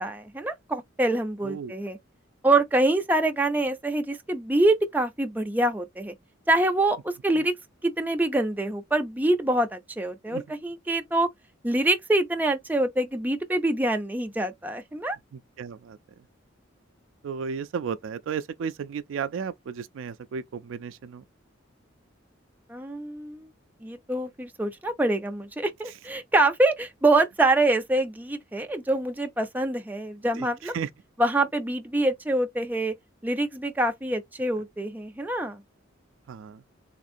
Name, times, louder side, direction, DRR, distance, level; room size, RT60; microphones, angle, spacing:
voice 1, 0.0-2.0 2.4-6.1 6.5-7.5 7.8-11.3 11.6-15.2 22.7-23.5 23.8-30.7 31.2-32.9 33.2-35.6, right 2 dB, 10° right, 0.5 m, -25 dB
voice 2, 1.4-1.7 10.3-10.4 15.3-16.0 17.2-21.2 30.4-30.9 36.3-36.6, right 6 dB, 70° right, 0.3 m, -34 dB
3.5 x 2.5 x 2.5 m
head